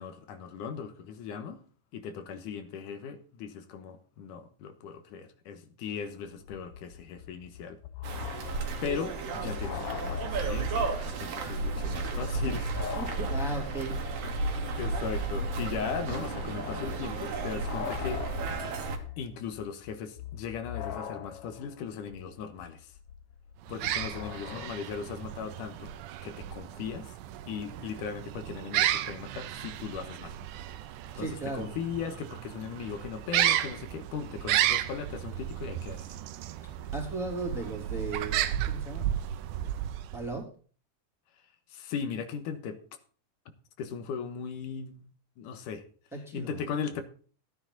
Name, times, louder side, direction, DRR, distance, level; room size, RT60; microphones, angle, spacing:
voice 1, 0.0-1.6 1.9-7.8 8.8-12.7 13.4-13.6 14.8-18.2 19.2-22.9 23.7-25.9 26.2-27.1 27.5-30.4 31.2-36.0 41.7-42.8 43.8-45.1 45.4-45.8 46.3-47.0, left 6 dB, 85° left, 2.7 m, -38 dB
sound 1, 6.0-6.1 6.2-11.1 11.4-11.5 12.0-24.7, left 9 dB, 65° left, 1.5 m, -42 dB
sound 2, 8.0-19.0, right 3 dB, 60° right, 2.2 m, -33 dB
voice 2, 13.0-14.2 31.2-31.8 36.9-39.1 39.6-39.8 40.1-40.5 46.1-46.6, right 2 dB, ahead, 2.7 m, -36 dB
sound 3, 23.6-40.4, right 12 dB, 85° right, 2.3 m, -33 dB
14.0 x 9.6 x 4.0 m
omnidirectional pair, 3.6 m